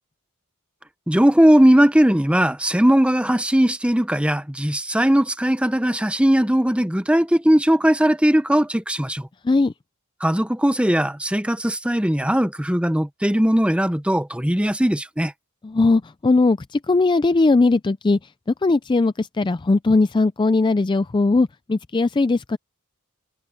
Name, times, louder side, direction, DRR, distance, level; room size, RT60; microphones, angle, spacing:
voice 1, 1.1-9.3 10.2-15.3, equal, 5° right, 0.8 m, -19 dB
voice 2, 15.6-18.2 18.6-22.6, left 3 dB, 20° left, 0.3 m, -19 dB
head